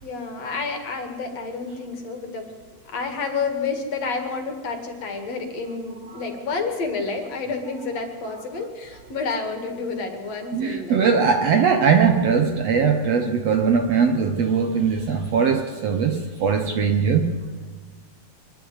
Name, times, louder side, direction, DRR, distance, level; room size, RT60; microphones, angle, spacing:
voice 1, 0.0-2.5 2.8-11.1, left 4 dB, 55° left, 3.0 m, -29 dB
voice 2, 10.5-17.4, right 6 dB, 65° right, 1.7 m, -20 dB
24.0 x 11.5 x 9.6 m
omnidirectional pair, 3.9 m